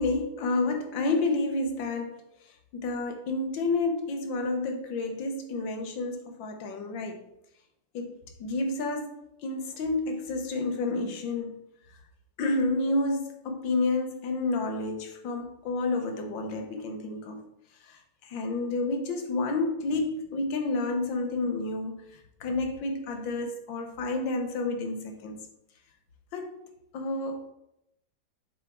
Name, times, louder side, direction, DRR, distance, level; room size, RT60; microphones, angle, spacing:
voice 1, 0.0-2.2 2.7-7.2 7.9-8.1 8.4-9.1 9.4-11.6 12.4-17.4 17.8-22.0 22.4-25.4 26.3-26.7 26.9-27.5, left 2 dB, 75° left, 4 dB, 1.7 m, -30 dB
7.3 x 4.1 x 4.6 m, 0.81 s
omnidirectional pair, 2.1 m